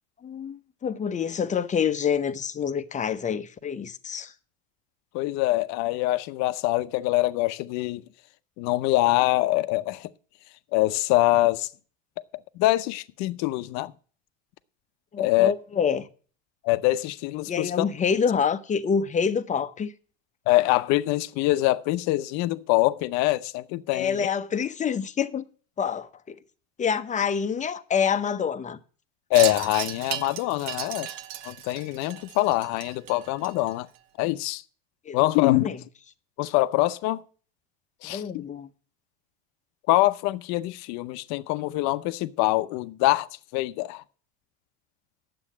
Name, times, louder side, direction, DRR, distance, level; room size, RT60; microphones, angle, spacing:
voice 1, 0.2-4.3 15.1-16.1 17.5-19.9 23.9-25.4 25.8-26.4 26.8-28.8 35.1-35.2 35.6-35.8 38.0-38.7, left 7 dB, 25° left, 0.8 m, -27 dB
voice 2, 5.1-8.0 8.6-10.1 10.7-11.7 12.6-13.9 15.2-15.5 16.6-17.8 20.5-24.3 29.3-31.1 31.4-33.9 34.2-34.6 35.1-35.7 36.4-37.2 38.0-38.4 39.9-43.3 43.5-44.0, left 18 dB, 60° left, 0.7 m, -24 dB
Wind chime, 29.3-34.0, right 11 dB, 60° right, 0.9 m, -35 dB
9.9 x 7.7 x 7.3 m
supercardioid pair, 105°, 30 cm